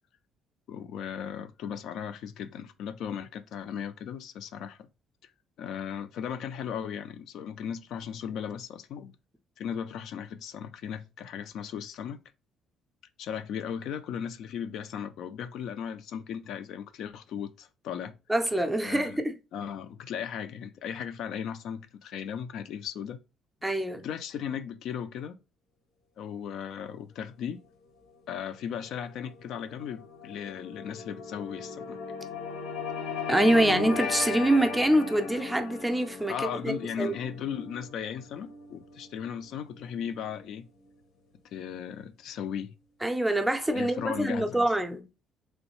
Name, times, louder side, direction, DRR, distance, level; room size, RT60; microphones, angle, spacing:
voice 1, 0.7-4.9 5.2-5.3 5.6-9.1 9.6-12.2 13.2-18.2 18.8-19.2 19.5-23.2 24.0-25.4 26.2-27.6 28.3-32.0 36.3-40.7 41.5-42.7 43.7-44.6, left 8 dB, 65° left, 0.3 m, -36 dB
voice 2, 18.3-19.3 23.6-24.0 33.3-37.1 43.0-45.1, right 1 dB, 5° right, 0.4 m, -25 dB
sound 1, 27.8-40.4, left 5 dB, 85° left, 0.9 m, -38 dB
3.5 x 3.1 x 3.0 m
cardioid pair, 160°, 0 cm